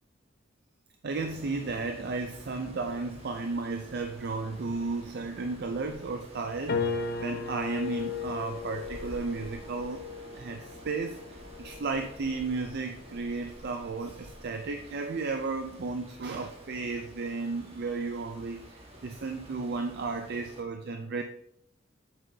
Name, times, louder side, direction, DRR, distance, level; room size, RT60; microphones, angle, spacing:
voice 1, 1.0-6.9 7.2-10.0 10.3-11.2 11.6-21.2, right 3 dB, 55° right, 6 dB, 0.5 m, -34 dB
sound 1, 1.1-20.6, right 1 dB, 30° right, 1.4 m, -49 dB
sound 2, 6.7-13.2, left 5 dB, 55° left, 0.8 m, -37 dB
8.0 x 7.4 x 2.7 m, 0.73 s
head